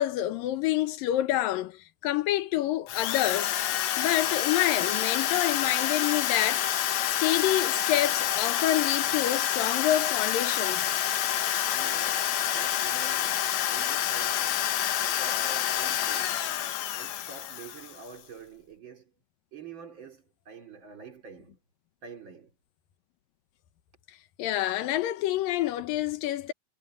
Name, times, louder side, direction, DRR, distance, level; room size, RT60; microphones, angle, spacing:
voice 1, 0.0-3.6 4.0-6.7 7.1-10.9 24.4-26.5, left 13 dB, 90° left, 2.8 m, -27 dB
Drill, 2.9-18.1, left 11 dB, 65° left, 2.1 m, -28 dB
voice 2, 11.7-14.6 15.0-16.4 16.9-19.1 19.5-21.6 22.0-22.5, right 5 dB, 35° right, 3.1 m, -47 dB
omnidirectional pair, 3.9 m